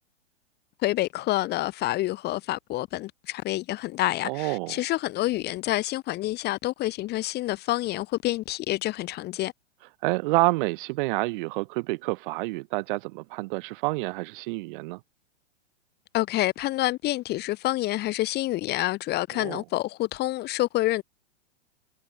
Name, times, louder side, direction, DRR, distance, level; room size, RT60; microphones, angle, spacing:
voice 1, 0.8-9.5 16.1-21.0, left 16 dB, 30° left, 1.4 m, -28 dB
voice 2, 4.2-4.8 10.0-15.0 19.3-19.6, right 24 dB, 45° right, 4.7 m, -28 dB
hypercardioid pair, 115°, 34 cm